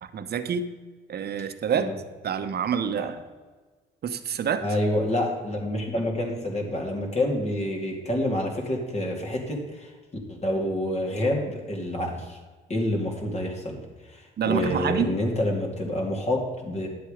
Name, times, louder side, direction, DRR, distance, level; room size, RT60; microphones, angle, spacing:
voice 1, 0.0-0.7 1.1-1.9 2.2-3.2 4.0-4.6 14.4-15.1, right 7 dB, 55° right, 10 dB, 0.9 m, -27 dB
voice 2, 4.6-9.9 10.3-12.4 12.7-13.8 14.1-16.9, left 1 dB, 35° left, 0 dB, 2.3 m, -28 dB
10.5 x 7.6 x 5.0 m, 1.4 s
cardioid pair, 90°, 20 cm